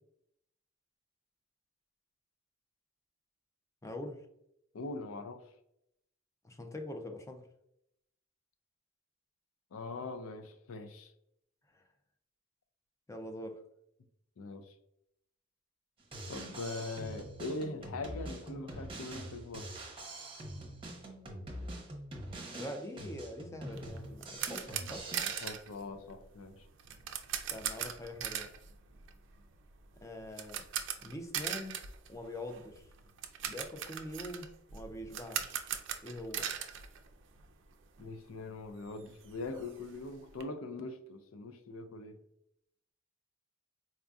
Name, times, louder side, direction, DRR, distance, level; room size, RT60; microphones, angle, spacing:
voice 1, 3.8-4.2 6.4-7.5 11.7-11.8 13.1-13.6 22.5-25.1 27.5-28.5 30.0-30.7 31.0-31.8 32.1-32.9 33.4-35.7 36.0-36.5, left 1 dB, 15° left, 5 dB, 0.4 m, -44 dB
voice 2, 4.7-5.4 9.7-11.1 14.4-14.8 16.3-19.7 24.7-24.9 25.2-26.7 38.0-42.2, left 2 dB, 85° left, 9 dB, 0.4 m, -42 dB
Drum kit, 16.0-25.5, right 1 dB, 25° right, 0.8 m, -44 dB
sound 1, 23.7-37.7 38.0-38.1 38.5-38.6 38.9-40.4, right 9 dB, 60° right, 0.4 m, -40 dB
4.2 x 2.6 x 2.3 m, 0.77 s
head